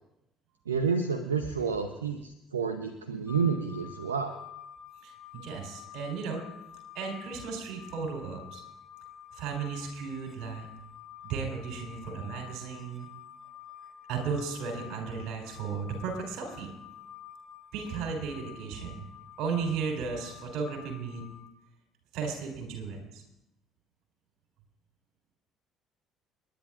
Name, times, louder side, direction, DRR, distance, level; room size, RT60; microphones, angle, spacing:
voice 1, 0.7-4.3, right 5 dB, 80° right, 8 dB, 0.7 m, -30 dB
sound 1, 3.3-21.5, left 10 dB, 15° left, 3.5 m, -49 dB
voice 2, 5.0-6.4 6.9-8.6 9.3-10.7 11.2-13.1 14.1-16.7 17.7-19.0 19.4-21.2 22.1-23.2, right 5 dB, 60° right, 2 dB, 3.8 m, -35 dB
30.0 x 10.5 x 2.5 m, 0.86 s
figure-of-eight pair, 55°, 0 cm